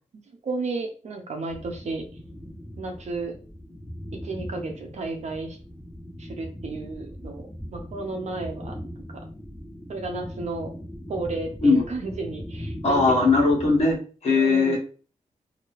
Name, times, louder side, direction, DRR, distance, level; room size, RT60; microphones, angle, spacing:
voice 1, 0.4-2.0 2.8-3.3 4.1-5.6 6.2-8.7 9.9-10.7 11.1-13.3 14.3-14.8, right 3 dB, 60° right, 3 dB, 0.8 m, -33 dB
sound 1, 1.5-14.0, equal, 10° left, 1.1 m, -39 dB
voice 2, 12.8-14.8, left 3 dB, 55° left, -3 dB, 1.3 m, -20 dB
2.9 x 2.7 x 3.1 m, 0.38 s
wide cardioid pair, 125°, 13 cm